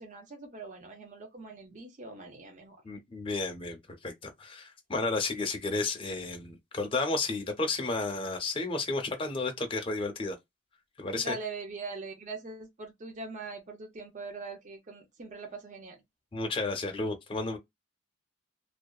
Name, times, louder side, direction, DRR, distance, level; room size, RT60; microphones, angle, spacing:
voice 1, 0.0-2.8 11.2-16.0, right 3 dB, 40° right, 0.6 m, -42 dB
voice 2, 2.8-10.4 11.0-11.3 16.3-17.6, left 3 dB, 25° left, 0.6 m, -32 dB
2.7 x 2.1 x 2.3 m
head